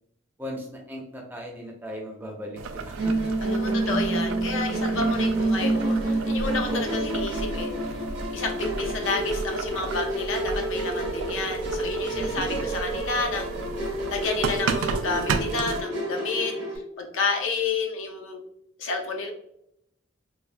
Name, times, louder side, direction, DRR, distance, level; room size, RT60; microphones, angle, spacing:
voice 1, 0.4-3.3 5.0-5.5 6.5-7.0 12.1-12.7, equal, 10° right, 0 dB, 0.4 m, -37 dB
Boiling, 2.6-15.8, right 4 dB, 80° right, 0.3 m, -34 dB
Musical instrument, 3.0-16.8, right 2 dB, 55° right, 0.7 m, -29 dB
voice 2, 3.4-8.0 8.3-13.4 14.1-18.4 18.8-19.3, left 3 dB, 75° left, 2 dB, 0.6 m, -30 dB
3.2 x 2.1 x 2.4 m, 0.77 s
head